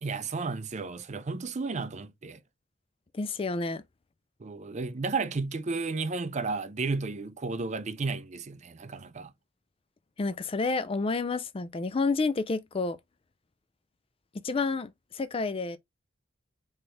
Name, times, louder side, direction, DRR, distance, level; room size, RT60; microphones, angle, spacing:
voice 1, 0.0-2.4 4.4-9.3, right 4 dB, 35° right, 0.5 m, -33 dB
voice 2, 3.1-3.8 10.2-13.0 14.4-15.8, left 3 dB, 30° left, 0.4 m, -29 dB
4.4 x 3.3 x 3.1 m
head